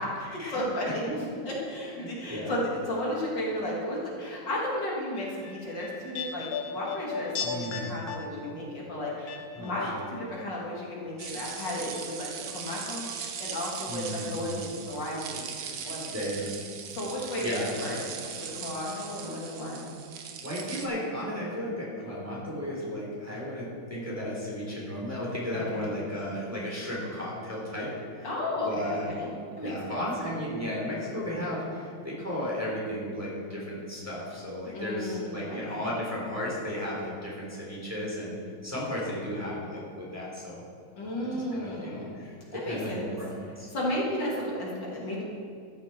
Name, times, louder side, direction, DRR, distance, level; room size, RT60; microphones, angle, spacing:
voice 1, 0.5-1.0 1.5-16.2 16.8-19.9 25.5-25.9 28.2-30.0 34.7-35.9 40.9-42.1 42.5-43.1 43.7-45.2, left 1 dB, 60° left, -4 dB, 2.7 m, -34 dB
voice 2, 2.0-2.5 7.4-8.0 9.5-9.9 13.9-14.5 16.1-16.5 17.4-17.7 20.4-28.3 28.6-29.1 29.6-40.6 41.1-43.7, equal, 5° right, -6 dB, 3.1 m, -34 dB
sound 1, 5.2-10.4 10.7-11.6 11.9-12.0, left 5 dB, 85° left, 1.9 m, -37 dB
sound 2, 11.2-20.9, right 7 dB, 70° right, 1.6 m, -39 dB
14.0 x 9.5 x 4.4 m, 2.4 s
omnidirectional pair, 2.2 m